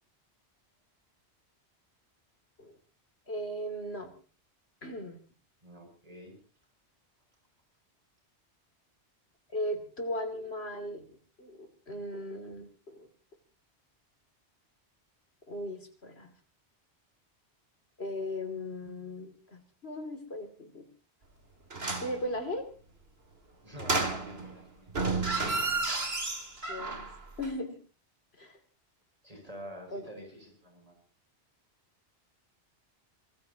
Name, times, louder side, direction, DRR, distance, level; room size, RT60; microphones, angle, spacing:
voice 1, 3.3-4.1 4.8-5.2 9.5-11.1 11.4-13.1 15.5-16.3 18.0-20.9 22.0-22.6 26.7-27.1 27.4-27.8 28.4-28.6 29.9-30.1, left 1 dB, 65° left, 6 dB, 3.1 m, -37 dB
voice 2, 5.6-6.4 23.6-25.1 29.2-31.0, equal, 35° right, 2 dB, 7.4 m, -47 dB
sound 1, 21.7-22.2 23.8-24.6 24.9-27.2 27.4-27.5, right 3 dB, 65° right, 2.7 m, -31 dB
26.0 x 19.0 x 2.9 m, 0.37 s
omnidirectional pair, 1.1 m